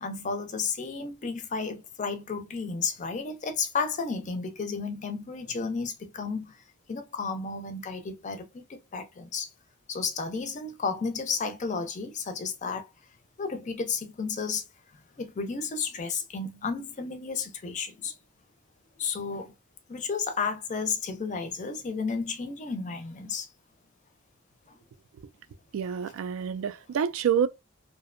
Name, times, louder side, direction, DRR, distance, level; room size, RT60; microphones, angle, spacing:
voice 1, 0.0-6.6 6.9-9.5 9.9-12.9 13.4-14.6 15.2-18.1 19.0-19.5 19.9-23.5 24.7-24.8, left 5 dB, 35° left, 0.4 m, -32 dB
voice 2, 25.7-27.5, right 8 dB, 80° right, 0.3 m, -27 dB
2.6 x 2.1 x 2.4 m
head